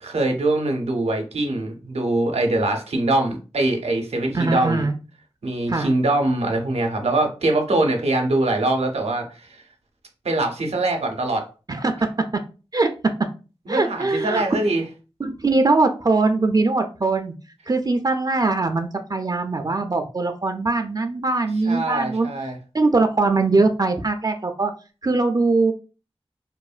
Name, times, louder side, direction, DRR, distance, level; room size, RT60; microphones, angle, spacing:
voice 1, 0.0-4.9 5.4-9.6 10.2-11.4 13.7-14.8 21.7-22.6, right 2 dB, 90° right, 3 dB, 0.6 m, -23 dB
voice 2, 4.3-4.9 5.7-5.9 11.7-12.0 12.7-12.9 13.7-14.4 15.2-17.3 17.7-22.3 22.7-24.7 25.0-25.7, right 3 dB, 40° right, 6 dB, 0.4 m, -21 dB
3.0 x 2.1 x 2.4 m, 0.33 s
wide cardioid pair, 50°, 11 cm